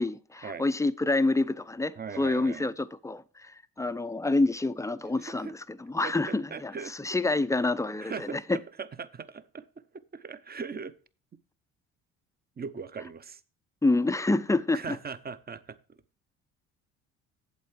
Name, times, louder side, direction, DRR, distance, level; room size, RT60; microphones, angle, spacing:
voice 1, 0.0-8.6 13.8-15.0, left 2 dB, 10° left, 0.5 m, -28 dB
voice 2, 2.0-2.7 5.2-5.5 6.0-6.9 8.0-8.4 8.8-9.7 10.1-10.9 12.6-13.4 14.7-15.8, right 5 dB, 25° right, 0.8 m, -39 dB
8.3 x 7.4 x 4.6 m
hypercardioid pair, 60°, 37 cm